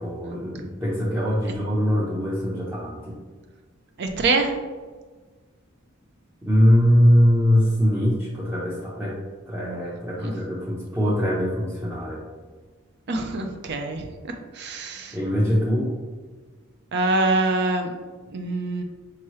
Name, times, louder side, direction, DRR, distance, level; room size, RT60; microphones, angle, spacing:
voice 1, 0.0-3.2 6.4-9.2 9.5-12.2 15.1-15.9, equal, 10° right, -7 dB, 0.6 m, -22 dB
voice 2, 4.0-4.6 10.2-10.3 13.1-15.2 16.9-17.9 18.3-18.8, right 2 dB, 55° right, 5 dB, 0.5 m, -25 dB
4.6 x 2.9 x 3.0 m, 1.4 s
head